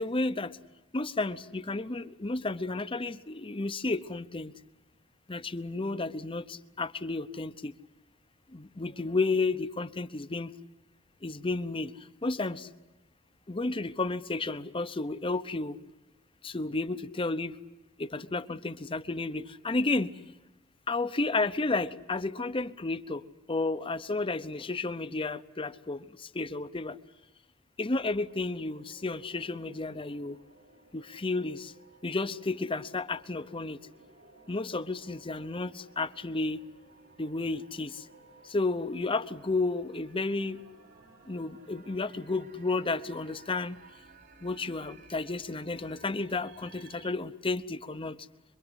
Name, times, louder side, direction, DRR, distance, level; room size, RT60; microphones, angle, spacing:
voice 1, 0.0-0.5 0.9-4.5 5.3-7.7 8.5-10.5 11.2-11.9 12.2-12.7 13.5-15.8 16.4-17.5 18.0-20.1 20.9-23.2 23.5-26.0 26.3-27.0 27.8-30.4 30.9-31.7 32.0-33.8 34.5-36.6 37.2-37.9 38.5-40.6 41.3-43.8 44.4-48.2, left 3 dB, 25° left, 12 dB, 0.8 m, -32 dB
sound 1, 28.2-47.1, right 3 dB, 60° right, 3.3 m, -57 dB
26.5 x 23.0 x 8.1 m, 1.1 s
head